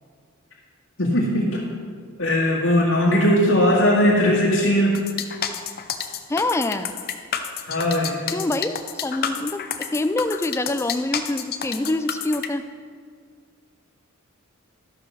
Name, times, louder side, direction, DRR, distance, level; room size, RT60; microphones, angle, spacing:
voice 1, 1.0-1.6 2.2-4.9 7.7-8.2, left 1 dB, 80° left, -7 dB, 1.9 m, -19 dB
sound 1, 4.9-12.5, left 8 dB, 50° left, 0.7 m, -29 dB
voice 2, 6.3-6.9 8.3-12.6, left 2 dB, 15° left, 10 dB, 0.4 m, -25 dB
13.0 x 6.0 x 6.2 m, 2.1 s
head